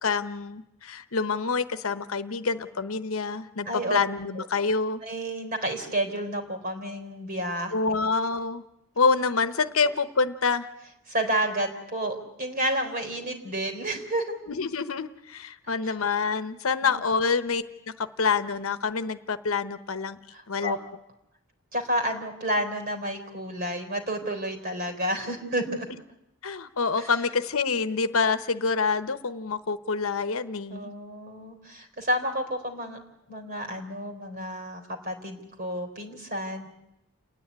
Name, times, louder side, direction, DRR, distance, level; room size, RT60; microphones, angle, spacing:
voice 1, 0.0-5.0 7.7-8.6 9.0-10.7 14.5-17.6 18.0-20.2 20.5-20.8 26.4-30.9, left 4 dB, 75° left, 11 dB, 0.9 m, -27 dB
voice 2, 3.7-4.0 4.4-4.5 5.0-7.7 11.1-14.3 15.8-15.9 16.8-17.0 20.3-20.8 21.7-25.9 27.0-27.1 30.7-33.0 33.3-36.7, right 1 dB, 45° right, 5 dB, 3.9 m, -30 dB
29.5 x 10.0 x 9.6 m, 0.87 s
head